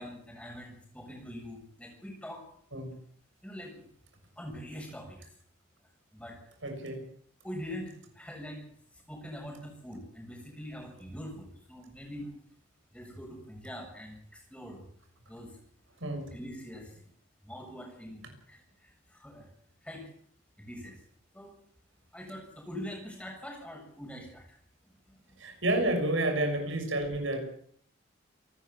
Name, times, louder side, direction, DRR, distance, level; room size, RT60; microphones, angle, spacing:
voice 1, 0.0-2.4 3.4-3.8 4.4-5.3 6.1-6.4 7.4-8.6 9.1-12.4 12.9-14.9 15.3-15.6 16.3-17.0 17.4-19.5 19.8-20.0 20.6-20.9 21.3-21.5 22.1-24.4 24.8-25.4, equal, 5° left, 1 dB, 7.4 m, -43 dB
voice 2, 6.6-7.0 16.0-16.2 25.4-27.4, right 1 dB, 80° right, 4 dB, 6.7 m, -30 dB
28.5 x 13.5 x 7.3 m, 0.62 s
head